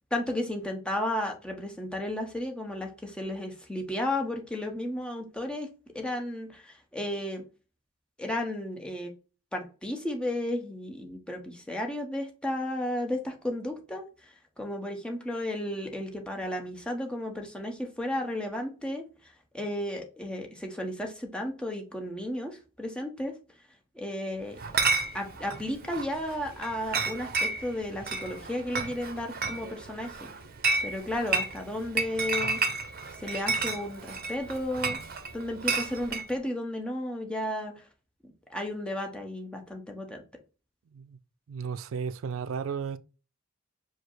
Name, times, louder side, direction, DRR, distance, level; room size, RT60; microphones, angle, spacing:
voice 1, 0.1-5.7 5.9-7.4 8.2-9.1 9.5-19.0 19.5-23.3 23.9-24.6 25.1-30.3 30.8-32.6 33.2-35.0 35.3-37.8 38.5-40.2, left 1 dB, 5° left, 0.9 m, -33 dB
Chatter / Chink clink, 24.6-36.3, right 3 dB, 50° right, 0.7 m, -32 dB
voice 2, 41.5-43.0, right 6 dB, 80° right, 0.4 m, -34 dB
4.9 x 2.0 x 4.5 m
head